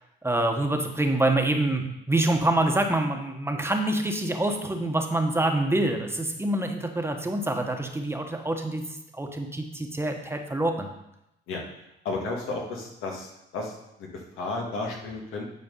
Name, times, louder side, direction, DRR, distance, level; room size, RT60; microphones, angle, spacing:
voice 1, 0.2-10.9, right 1 dB, 10° right, 3 dB, 1.1 m, -26 dB
voice 2, 12.0-15.4, left 3 dB, 85° left, 0 dB, 1.8 m, -33 dB
9.9 x 4.5 x 5.4 m, 0.86 s
cardioid pair, 90°, 20 cm